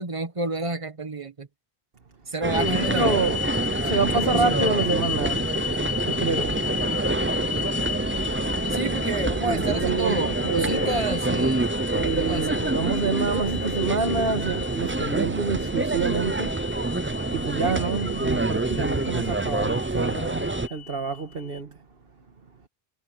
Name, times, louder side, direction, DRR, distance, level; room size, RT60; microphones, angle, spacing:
voice 1, 0.0-1.5 2.3-3.3 3.8-4.5 8.7-11.7 12.0-12.7, right 2 dB, 30° right, 1.2 m, -30 dB
sound 1, 2.4-20.7, right 2 dB, 15° right, 0.4 m, -27 dB
sound 2, 2.5-21.6, left 9 dB, 80° left, 1.9 m, -34 dB
voice 2, 2.5-3.4 3.8-5.4 6.0-6.6 9.5-11.0 11.9-16.6 17.3-21.8, right 4 dB, 60° right, 1.9 m, -27 dB
sound 3, 8.6-17.4, right 2 dB, 15° left, 7.4 m, -53 dB
omnidirectional pair, 1.1 m